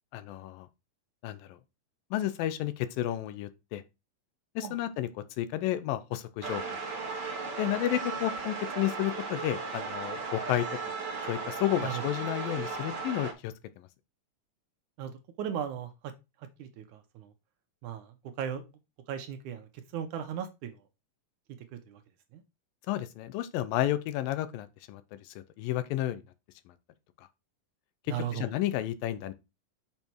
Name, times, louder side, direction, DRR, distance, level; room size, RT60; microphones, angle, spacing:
voice 1, 0.1-0.7 1.2-1.6 2.1-3.8 4.6-5.1 5.4-6.8 7.6-10.7 11.3-13.9 22.9-26.2 28.3-29.3, left 13 dB, 85° left, 2.5 m, -32 dB
sound 1, 6.4-13.3, right 4 dB, 45° right, 1.5 m, -36 dB
voice 2, 15.4-16.1 16.6-17.3 17.8-18.7 19.1-20.8 21.9-22.0 22.3-22.4 28.1-28.5, right 9 dB, 75° right, 2.1 m, -37 dB
6.8 x 5.7 x 4.5 m
omnidirectional pair, 3.9 m